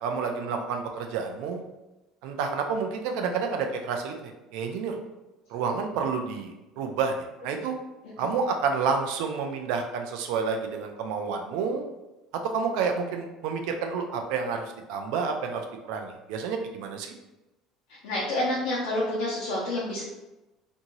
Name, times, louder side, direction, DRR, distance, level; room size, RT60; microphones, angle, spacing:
voice 1, 0.0-1.6 2.2-5.0 5.5-7.1 7.4-7.7 8.2-11.8 12.5-17.1, right 5 dB, 75° right, 4 dB, 0.4 m, -29 dB
voice 2, 17.9-20.0, left 1 dB, 90° left, -5 dB, 0.7 m, -28 dB
2.9 x 2.6 x 2.6 m, 1.0 s
cardioid pair, 150°, 0 cm